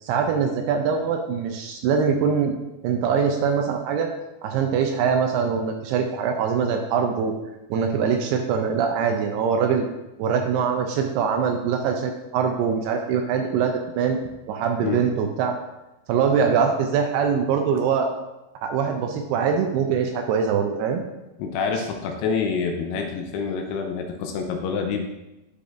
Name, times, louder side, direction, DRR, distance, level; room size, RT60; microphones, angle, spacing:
voice 1, 0.0-2.5 2.8-4.1 4.4-7.3 7.7-9.9 10.2-14.2 14.5-15.6 16.1-18.1 18.6-21.0, right 6 dB, 80° right, 4 dB, 2.4 m, -23 dB
voice 2, 21.4-25.2, left 5 dB, 80° left, 4 dB, 2.5 m, -27 dB
11.5 x 5.2 x 2.5 m, 0.99 s
omnidirectional pair, 5.0 m